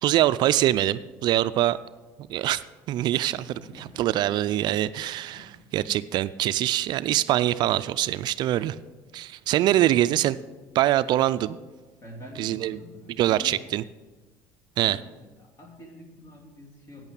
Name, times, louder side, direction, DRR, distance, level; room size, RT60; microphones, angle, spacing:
voice 1, 0.0-1.8 2.3-5.5 5.7-8.8 9.1-10.4 10.7-11.6 12.4-12.8 13.2-13.8 14.8-15.0, right 13 dB, 55° right, 15 dB, 0.3 m, -24 dB
voice 2, 3.3-4.2 5.3-6.0 9.6-9.9 12.0-13.7 14.8-17.1, equal, 35° left, 2 dB, 2.6 m, -46 dB
8.9 x 8.2 x 6.8 m, 1.2 s
supercardioid pair, 105°, 9 cm